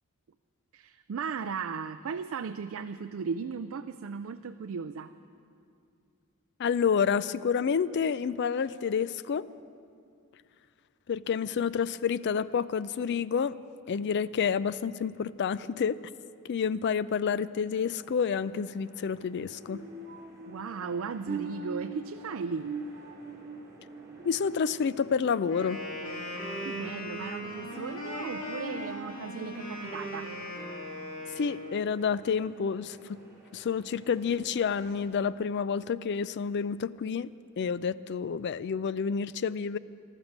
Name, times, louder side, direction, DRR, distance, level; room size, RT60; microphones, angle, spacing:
voice 1, 0.7-5.1 20.5-22.7 26.6-30.3, right 5 dB, 60° right, 9 dB, 0.4 m, -36 dB
voice 2, 6.6-9.5 11.1-13.6 13.9-16.0 16.4-19.8 24.2-25.8 31.4-33.2 33.5-37.3 37.6-39.8, left 6 dB, 50° left, 17 dB, 0.3 m, -29 dB
sound 1, 17.7-35.1, right 1 dB, 15° right, 3.2 m, -55 dB
sound 2, 19.7-25.4 25.8-26.1 26.6-26.8, right 4 dB, 45° right, 2.0 m, -42 dB
Wind instrument woodwind instrument, 25.5-31.8, equal, 70° left, 2.4 m, -38 dB
14.0 x 13.0 x 7.3 m, 2.3 s
head